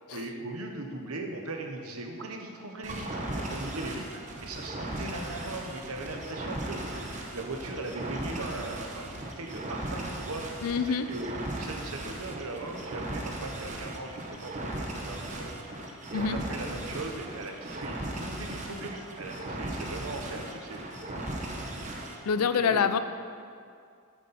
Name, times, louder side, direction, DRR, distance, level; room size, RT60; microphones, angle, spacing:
voice 1, 0.1-10.4 10.9-15.6 16.1-20.8 22.4-22.8, right 2 dB, 80° right, 3 dB, 1.1 m, -39 dB
sound 1, 2.8-22.2, right 1 dB, 35° right, 0.9 m, -37 dB
voice 2, 10.6-11.1 16.1-16.4 22.3-23.0, left 6 dB, 90° left, 12 dB, 0.5 m, -26 dB
9.3 x 8.2 x 4.2 m, 2.3 s
head